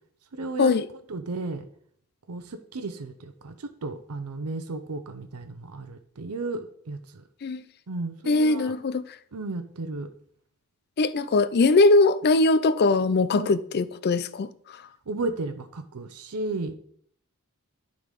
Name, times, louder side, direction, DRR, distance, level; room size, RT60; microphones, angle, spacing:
voice 1, 0.3-0.8 1.1-1.7 2.3-7.2 7.9-8.7 9.3-10.1 13.3-13.5 15.1-16.8, right 2 dB, 85° right, 0.7 m, -34 dB
voice 2, 8.3-9.0 11.0-14.5, left 3 dB, 50° left, 0.4 m, -21 dB
11.5 x 3.9 x 5.1 m
head